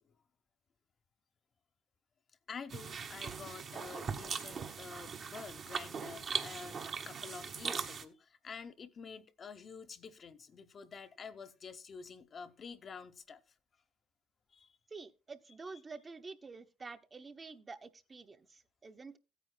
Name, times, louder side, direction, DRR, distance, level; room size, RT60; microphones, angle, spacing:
voice 1, 2.5-13.4 14.5-14.8, left 5 dB, 45° left, 0.9 m, -49 dB
sound 1, 2.7-8.0, right 6 dB, 50° right, 1.3 m, -40 dB
voice 2, 14.9-19.2, right 4 dB, 30° right, 1.0 m, -49 dB
16.0 x 9.3 x 2.2 m
hypercardioid pair, 65°, 0 cm